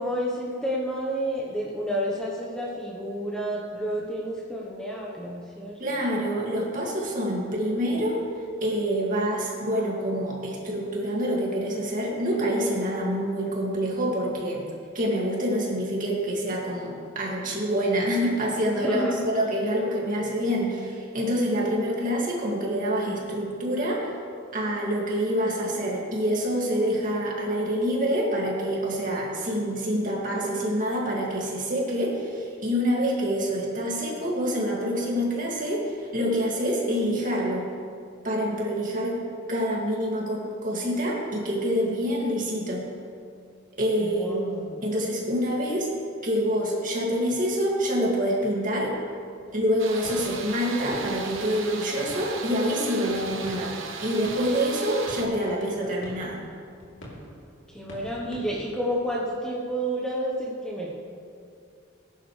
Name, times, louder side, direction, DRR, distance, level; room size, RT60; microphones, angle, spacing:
voice 1, 0.0-6.0 18.8-19.4 44.0-44.8 57.7-61.0, equal, 5° left, -4 dB, 1.1 m, -30 dB
voice 2, 5.8-8.2 8.6-14.7 14.9-24.1 24.5-37.7 38.2-39.2 39.5-42.9 43.8-45.9 46.2-49.0 49.5-56.4, equal, 40° right, -3 dB, 2.4 m, -26 dB
sound 1, 48.8-49.8 50.0-58.6, equal, 60° left, 3.3 m, -46 dB
sound 2, 49.8-55.3, right 4 dB, 75° right, 1.1 m, -37 dB
19.0 x 10.5 x 3.3 m, 2.4 s
head